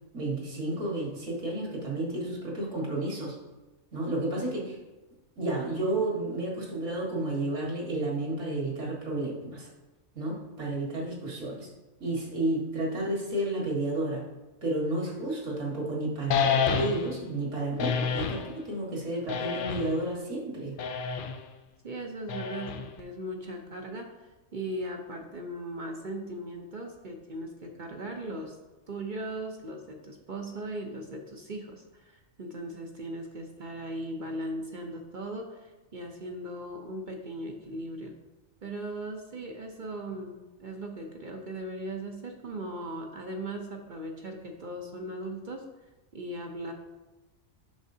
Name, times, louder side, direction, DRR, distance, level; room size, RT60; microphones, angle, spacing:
voice 1, 0.1-3.4 3.9-4.8 5.4-9.7 10.2-11.7 12.0-14.2 14.6-20.8, right 2 dB, 65° right, -3 dB, 2.0 m, -31 dB
sound 1, 16.3-17.2 17.8-18.5 19.3-20.0 20.8-21.4 22.3-23.0, left 6 dB, 65° left, 0.5 m, -29 dB
voice 2, 21.8-24.1 24.5-28.6 28.9-38.1 38.6-45.6 46.1-46.7, right 1 dB, 45° right, 2 dB, 0.7 m, -38 dB
8.2 x 6.2 x 2.7 m, 1.1 s
omnidirectional pair, 1.4 m